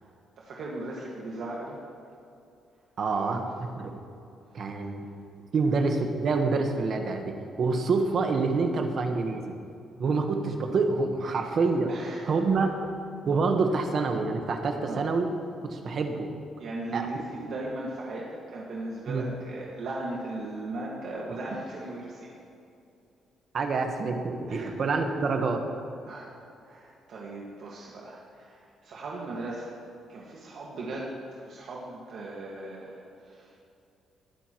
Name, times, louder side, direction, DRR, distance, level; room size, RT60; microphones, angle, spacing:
voice 1, 0.4-1.8 3.1-3.5 4.8-5.1 11.9-12.4 14.7-15.0 16.6-22.4 24.5-24.7 26.0-26.4 26.6-29.8 30.1-31.2 31.4-33.6, right 2 dB, 60° right, -4 dB, 1.7 m, -38 dB
voice 2, 3.0-3.4 3.8-3.9 4.5-5.1 5.5-9.5 10.0-11.9 12.3-12.8 13.2-15.3 15.6-16.3 16.9-17.1 19.1-19.2 23.5-25.6, right 4 dB, 45° right, 4 dB, 1.2 m, -27 dB
21.0 x 9.3 x 3.1 m, 2.6 s
cardioid pair, 145°, 0 cm